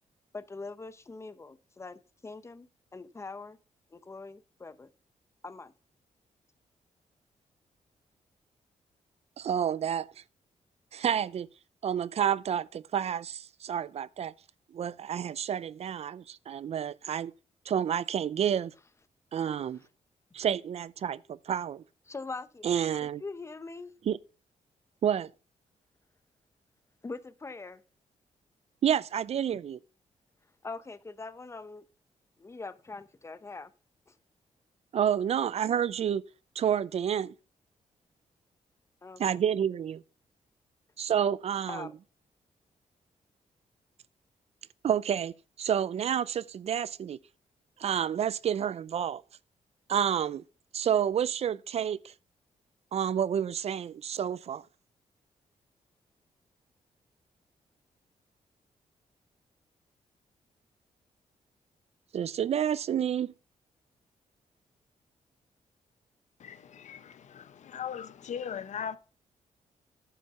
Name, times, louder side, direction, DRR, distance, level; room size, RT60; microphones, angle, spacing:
voice 1, 0.3-3.6 3.9-4.9 5.4-5.7 22.1-23.9 27.0-27.8 30.6-31.8 32.4-33.7 34.1-34.2 39.0-39.4 41.7-42.0, left 3 dB, 20° left, 0.8 m, -43 dB
voice 2, 9.4-10.1 10.9-11.5 11.8-14.3 14.7-17.3 17.7-18.7 19.3-19.8 20.3-21.2 21.5-21.8 22.6-23.2 24.1-24.2 25.0-25.3 28.8-29.8 34.9-36.2 36.6-37.3 39.2-40.0 41.0-41.9 44.8-47.2 47.8-49.2 49.9-50.4 50.7-52.1 52.9-54.6 62.1-63.3, right 9 dB, 55° right, 0.4 m, -29 dB
voice 3, 66.4-69.0, left 8 dB, 65° left, 0.8 m, -39 dB
9.7 x 6.5 x 5.5 m
cardioid pair, 115°, 13 cm